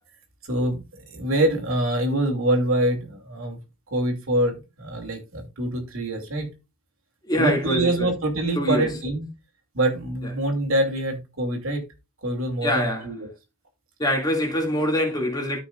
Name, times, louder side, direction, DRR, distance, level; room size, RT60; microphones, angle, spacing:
voice 1, 0.4-3.6 3.9-6.5 7.4-9.3 9.7-11.8 12.2-13.3, right 1 dB, 70° right, 2.6 m, -25 dB
voice 2, 7.3-8.1 8.6-8.9 12.6-13.1 14.0-15.6, equal, 20° left, 2.4 m, -24 dB
13.5 x 5.9 x 2.5 m
head